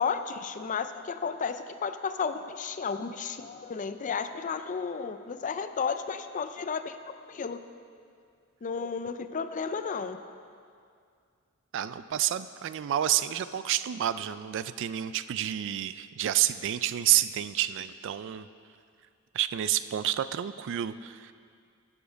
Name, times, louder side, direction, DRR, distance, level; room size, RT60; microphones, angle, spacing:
voice 1, 0.0-7.0 7.3-7.6 8.6-10.2, left 5 dB, 35° left, 10 dB, 0.4 m, -33 dB
voice 2, 11.7-18.5 19.3-21.3, right 12 dB, 60° right, 14 dB, 0.3 m, -29 dB
11.5 x 7.2 x 5.1 m, 2.3 s
head